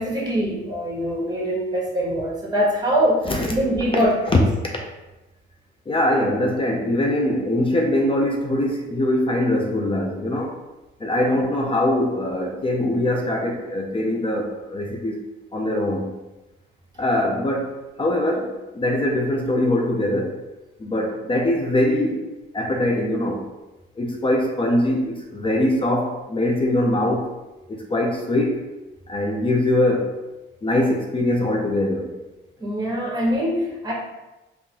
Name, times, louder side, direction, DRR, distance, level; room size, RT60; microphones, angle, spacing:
voice 1, 0.0-4.2 32.6-33.9, equal, 20° right, -3 dB, 1.2 m, -23 dB
voice 2, 5.9-10.5 11.0-15.2 15.5-16.1 17.0-17.7 18.0-20.4 20.8-22.2 22.5-23.4 24.0-27.3 27.7-28.7 29.1-30.1 30.6-32.1, left 1 dB, 25° left, 1 dB, 0.5 m, -22 dB
3.6 x 2.6 x 2.8 m, 1.0 s
cardioid pair, 90°, 20 cm